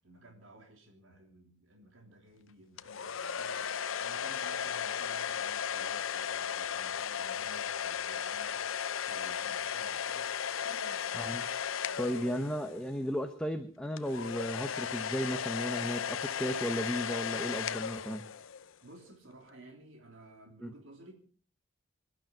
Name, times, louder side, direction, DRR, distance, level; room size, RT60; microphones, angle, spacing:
voice 1, 0.0-8.6 9.0-11.0 18.8-21.1, right 1 dB, 75° right, 2 dB, 3.2 m, -55 dB
sound 1, 2.8-12.9 14.0-18.7, left 8 dB, 85° left, 0.7 m, -35 dB
voice 2, 12.0-18.2 20.6-20.7, equal, 5° left, 6 dB, 1.0 m, -35 dB
26.0 x 12.0 x 4.5 m, 0.43 s
head